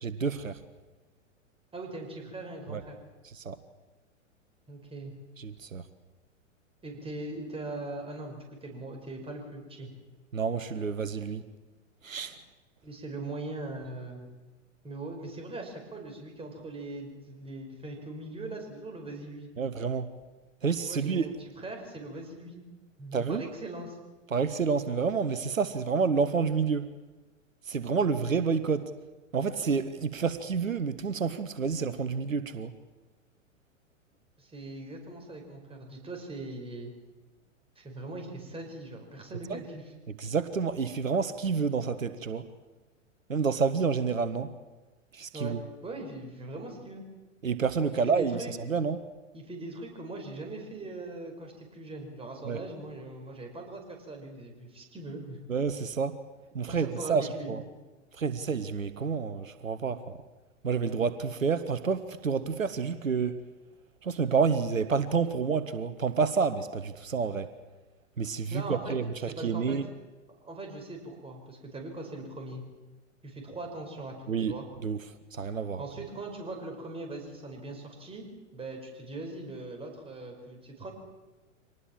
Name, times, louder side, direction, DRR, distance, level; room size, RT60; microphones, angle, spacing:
voice 1, 0.0-0.6 2.7-2.8 3.2-3.6 5.4-5.9 10.3-11.5 12.0-12.4 19.6-20.1 20.6-21.3 23.1-23.4 24.3-26.9 27.6-28.9 29.3-32.7 39.5-39.6 40.2-42.5 43.3-44.5 45.1-45.6 47.4-49.0 52.4-52.7 55.5-56.2 56.5-57.6 58.1-60.2 60.6-63.4 64.0-67.5 68.2-69.9 74.3-75.0 75.3-75.8, right 5 dB, 85° right, 12 dB, 1.3 m, -29 dB
voice 2, 1.7-3.0 4.7-5.1 6.8-9.9 12.8-14.3 14.8-19.5 20.8-22.6 23.0-24.0 34.4-36.9 37.8-39.8 45.3-45.5 45.8-47.0 48.0-48.5 49.3-55.4 56.7-57.5 68.5-69.0 69.3-69.8 70.4-72.6 73.2-74.6 75.8-78.3 78.5-80.9, right 2 dB, 15° right, 2 dB, 5.6 m, -40 dB
25.0 x 19.5 x 7.4 m, 1.2 s
figure-of-eight pair, 100°, 39 cm